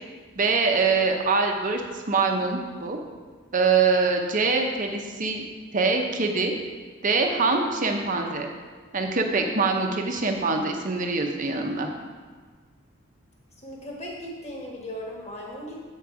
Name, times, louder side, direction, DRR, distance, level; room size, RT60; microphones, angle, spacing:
voice 1, 0.4-3.0 3.5-5.4 5.7-6.5 7.0-8.5 8.9-11.9, right 4 dB, 40° right, 3 dB, 0.7 m, -24 dB
voice 2, 13.6-15.8, equal, 35° left, -2 dB, 1.4 m, -37 dB
7.7 x 4.6 x 4.8 m, 1.5 s
head